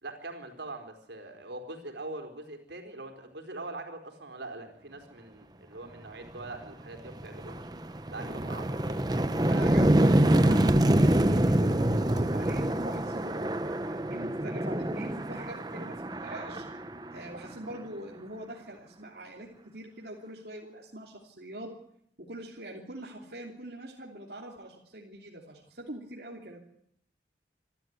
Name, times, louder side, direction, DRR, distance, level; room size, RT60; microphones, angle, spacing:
voice 1, 0.0-7.7 8.1-8.8, right 2 dB, 85° right, 4 dB, 4.6 m, -42 dB
sound 1, 6.4-6.6 7.0-17.8, right 1 dB, 20° right, 0.8 m, -26 dB
voice 2, 9.5-16.7 17.1-21.7 22.2-26.6, right 1 dB, 60° right, -2 dB, 3.0 m, -44 dB
27.0 x 13.0 x 9.7 m, 0.72 s
head